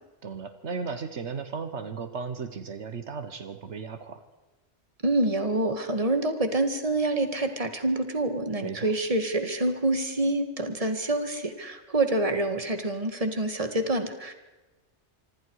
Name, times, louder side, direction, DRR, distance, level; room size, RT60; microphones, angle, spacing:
voice 1, 0.2-4.2 8.6-8.9, right 5 dB, 75° right, 10 dB, 1.5 m, -35 dB
voice 2, 5.0-14.3, right 2 dB, 30° right, 8 dB, 2.0 m, -27 dB
25.5 x 25.5 x 4.8 m, 1.1 s
omnidirectional pair, 1.2 m